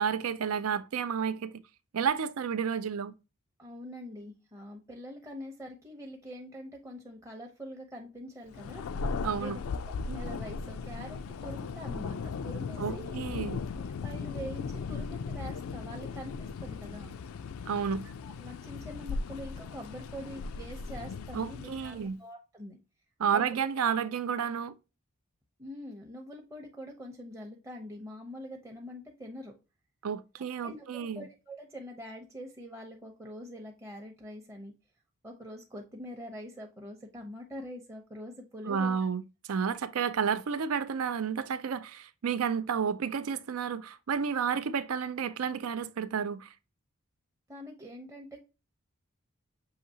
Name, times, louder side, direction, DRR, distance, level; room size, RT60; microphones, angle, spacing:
voice 1, 0.0-1.6 1.9-3.1 9.2-9.6 12.8-13.6 17.7-18.1 21.3-22.2 23.2-24.7 30.0-31.3 38.7-39.2 39.5-46.5, right 7 dB, 85° right, 0.5 m, -31 dB
voice 2, 3.6-8.8 9.4-9.6 10.1-13.1 14.0-17.1 18.2-22.8 23.3-23.4 25.6-29.5 30.6-34.7 35.2-39.0 47.5-48.4, equal, 15° right, 0.6 m, -44 dB
Thunder, 8.5-22.1, left 4 dB, 75° left, 0.4 m, -37 dB
6.4 x 2.8 x 2.7 m
head